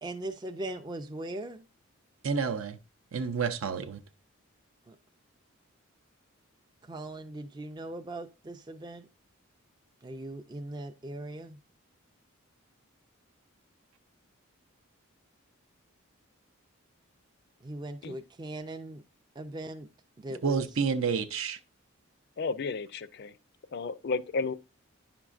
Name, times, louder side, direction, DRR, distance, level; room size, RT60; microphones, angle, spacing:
voice 1, 0.0-1.6 4.9-5.0 6.8-9.1 10.0-11.6 17.6-19.0 19.4-19.9 20.2-20.6, right 1 dB, 20° right, 0.4 m, -39 dB
voice 2, 2.2-2.8 3.1-4.0 20.4-21.6, right 5 dB, 70° right, 0.5 m, -29 dB
voice 3, 22.4-23.3 23.7-24.5, left 4 dB, 50° left, 0.4 m, -32 dB
9.8 x 5.9 x 2.4 m
head